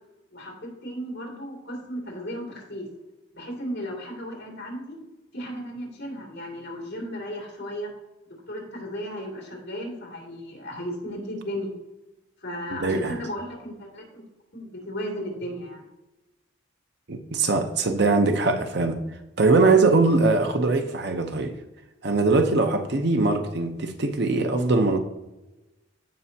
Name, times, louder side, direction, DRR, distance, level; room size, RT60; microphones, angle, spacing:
voice 1, 0.3-2.9 3.3-5.0 5.3-7.9 8.5-11.7 12.4-14.2 14.5-15.8, equal, 60° left, 2.7 m, -35 dB
voice 2, 12.7-13.2 17.1-19.0 19.4-21.5 22.0-25.0, right 3 dB, 60° right, 0.8 m, -21 dB
15.5 x 5.5 x 2.8 m
head